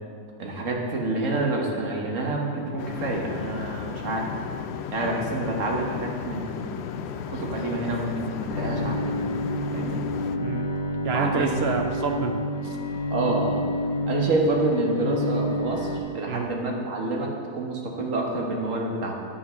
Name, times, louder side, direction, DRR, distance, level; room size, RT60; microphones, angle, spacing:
voice 1, 0.4-4.3 4.9-6.8 7.3-9.1 9.7-10.0 11.1-11.5 13.1-13.6 14.0-19.1, right 2 dB, 55° right, 0 dB, 1.6 m, -28 dB
sound 1, 2.8-10.4, left 7 dB, 85° left, 0.5 m, -34 dB
Bowed string instrument, 8.5-16.0, equal, 70° left, 1.3 m, -29 dB
voice 2, 11.0-12.8 16.3-16.5, right 6 dB, 85° right, 4 dB, 0.5 m, -28 dB
9.4 x 5.7 x 6.2 m, 2.3 s
omnidirectional pair, 1.7 m